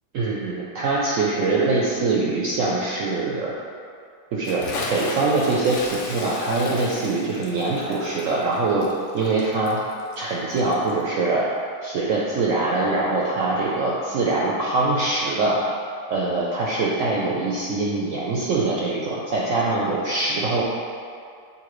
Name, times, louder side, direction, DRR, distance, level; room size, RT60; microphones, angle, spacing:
voice 1, 0.1-3.5 4.3-4.6 4.9-8.9 9.1-9.8 10.2-11.5 11.8-15.6 16.1-20.6, right 3 dB, 75° right, -5 dB, 0.7 m, -23 dB
Bathtub (filling or washing) / Splash splatter, 4.4-11.0, left 2 dB, 80° left, 0.6 m, -35 dB
6.8 x 2.6 x 3.0 m, 2.3 s
omnidirectional pair, 1.9 m